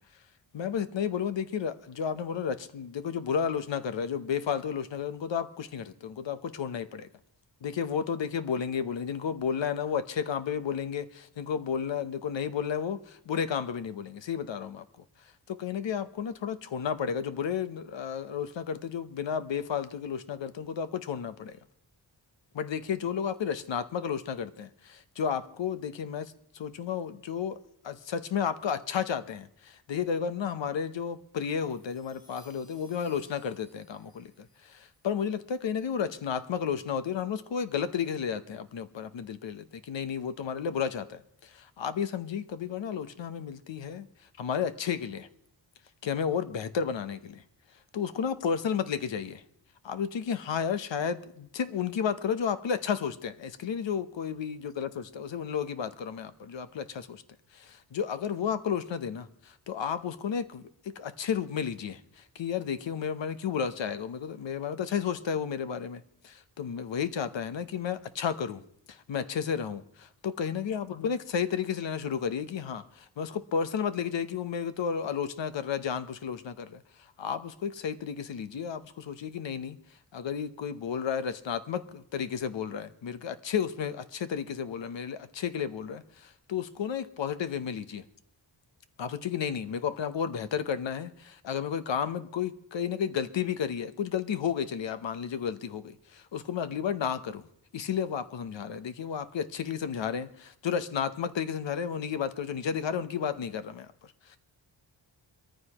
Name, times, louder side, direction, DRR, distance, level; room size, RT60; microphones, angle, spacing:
voice 1, 0.5-7.1 7.6-14.8 15.5-21.6 22.5-44.1 44.4-45.3 46.0-47.4 47.9-49.4 49.8-57.2 57.5-68.6 68.9-76.8 77.2-79.8 80.1-88.0 89.0-97.5 97.7-104.4, left 7 dB, 70° left, 13 dB, 0.9 m, -32 dB
sound 1, 31.6-36.1, equal, 50° left, 4.8 m, -63 dB
22.5 x 14.0 x 3.0 m, 0.71 s
wide cardioid pair, 140°, 46 cm